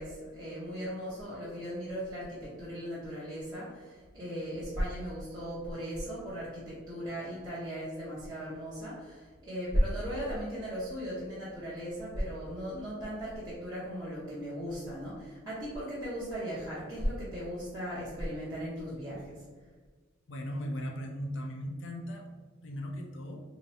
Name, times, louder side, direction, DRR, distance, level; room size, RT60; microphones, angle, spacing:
voice 1, 0.0-19.4, equal, 20° right, -11 dB, 0.8 m, -36 dB
voice 2, 20.3-22.2 22.6-23.4, equal, 65° left, 2 dB, 0.5 m, -37 dB
2.9 x 2.5 x 4.0 m, 1.4 s
head